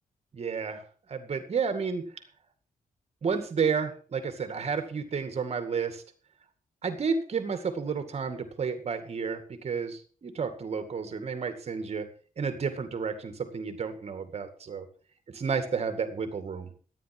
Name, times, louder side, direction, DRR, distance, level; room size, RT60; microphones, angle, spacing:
voice 1, 0.3-0.8 1.1-2.1 3.2-6.0 6.8-12.1 12.4-14.8 15.3-16.7, right 5 dB, 45° right, 9 dB, 2.1 m, -31 dB
13.5 x 9.8 x 6.1 m, 0.40 s
wide cardioid pair, 175°, 14 cm